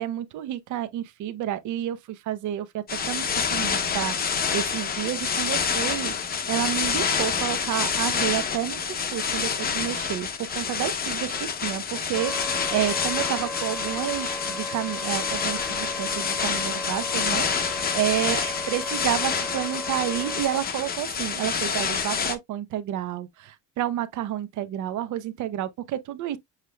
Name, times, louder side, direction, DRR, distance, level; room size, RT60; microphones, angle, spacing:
voice 1, 0.0-2.0 2.2-4.1 4.5-6.1 6.5-8.8 9.1-10.3 10.5-26.4, right 12 dB, 55° right, 0.8 m, -30 dB
sound 1, 2.9-22.3, left 6 dB, 25° left, 0.8 m, -28 dB
Wind instrument woodwind instrument, 12.1-20.6, equal, ahead, 0.4 m, -36 dB
7.2 x 3.2 x 2.2 m
cardioid pair, 170°, 35 cm